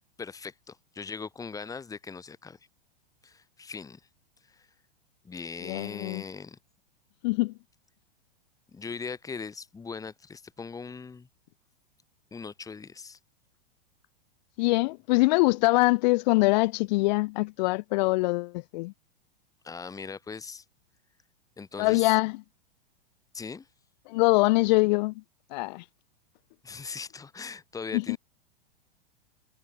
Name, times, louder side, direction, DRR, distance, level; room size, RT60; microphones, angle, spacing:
voice 1, 0.2-2.6 3.2-4.0 4.5-4.7 5.2-6.6 8.7-11.3 12.3-13.2 19.6-20.6 21.6-22.1 23.3-23.7 26.6-28.2, left 5 dB, 10° left, 1.7 m, -40 dB
voice 2, 5.6-6.2 7.2-7.5 14.6-18.9 21.8-22.4 24.1-25.1 25.5-25.8 27.9-28.2, left 24 dB, 45° left, 1.2 m, -23 dB
figure-of-eight pair, 100°, 30 cm